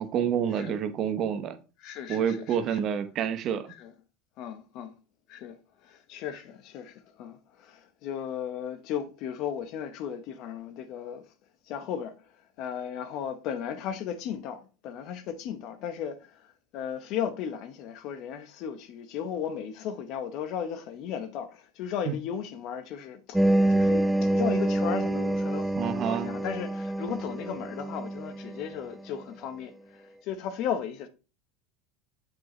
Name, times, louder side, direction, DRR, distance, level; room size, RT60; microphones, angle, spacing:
voice 1, 0.0-1.6 2.1-3.7 22.1-22.2 25.7-26.3, right 8 dB, 45° right, 0.8 m, -28 dB
voice 2, 1.8-2.8 3.8-3.9 4.4-4.9 5.3-11.2 11.7-12.3 12.6-31.1, left 8 dB, 55° left, 0.9 m, -36 dB
sound 1, 23.3-28.8, right 1 dB, 5° right, 0.5 m, -26 dB
7.6 x 4.7 x 3.1 m
supercardioid pair, 110°, 0 cm